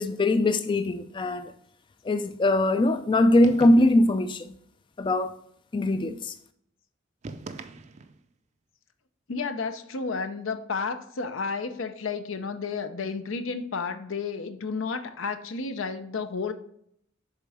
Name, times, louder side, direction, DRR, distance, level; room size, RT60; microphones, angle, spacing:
voice 1, 0.0-1.5 2.0-4.5 5.0-5.3 5.7-6.3, left 1 dB, 25° left, 0.3 m, -22 dB
sound 1, 3.4-4.2 7.2-8.3, right 3 dB, 35° right, 0.5 m, -40 dB
voice 2, 9.3-16.5, left 4 dB, 80° left, 0.7 m, -32 dB
7.4 x 3.7 x 4.8 m
head